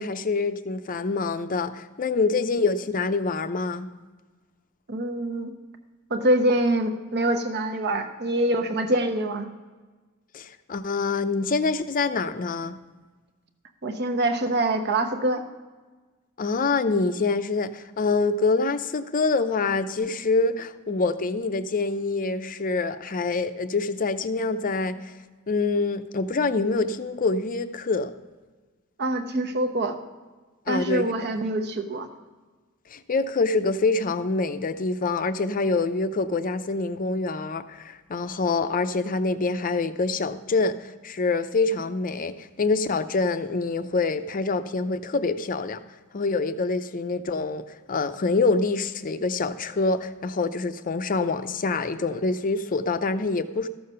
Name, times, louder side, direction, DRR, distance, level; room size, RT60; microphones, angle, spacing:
voice 1, 0.0-3.9 10.3-12.8 16.4-25.2 25.5-28.1 30.7-31.1 32.9-45.8 46.1-53.7, left 3 dB, 40° left, 11 dB, 0.5 m, -26 dB
voice 2, 4.9-5.5 6.1-9.5 13.8-15.4 29.0-30.0 30.7-32.1, right 1 dB, 50° right, 7 dB, 1.0 m, -25 dB
13.5 x 6.7 x 5.6 m, 1.3 s
head